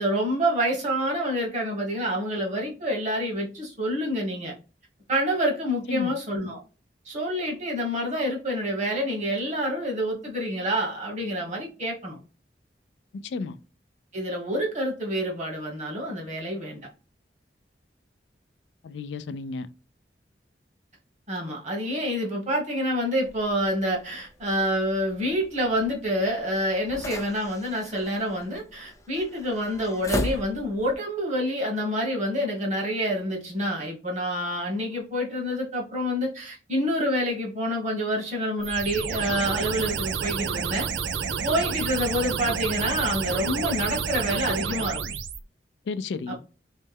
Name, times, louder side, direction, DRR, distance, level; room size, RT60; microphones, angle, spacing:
voice 1, 0.0-4.5 5.1-6.6 7.0-12.2 14.1-16.9 21.3-40.9 41.4-45.0 46.3-46.4, equal, 40° right, 1.4 m, -27 dB
voice 2, 13.1-13.6 18.8-19.7 45.9-46.4, left 4 dB, 70° left, 0.3 m, -32 dB
sound 1, 23.2-30.9, left 1 dB, 20° left, 0.5 m, -38 dB
sound 2, 38.6-45.4, right 6 dB, 85° right, 0.5 m, -30 dB
3.2 x 3.1 x 3.4 m
head